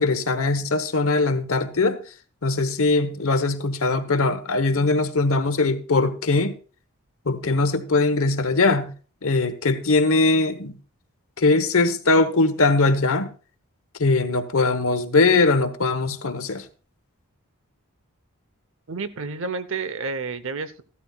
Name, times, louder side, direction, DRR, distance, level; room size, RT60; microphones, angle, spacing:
voice 1, 0.0-2.0 2.4-6.5 7.2-8.9 9.2-10.8 11.4-13.3 14.0-16.6, left 3 dB, 70° left, 1.1 m, -21 dB
voice 2, 18.9-20.8, right 4 dB, 60° right, 0.8 m, -30 dB
15.0 x 12.5 x 2.3 m
head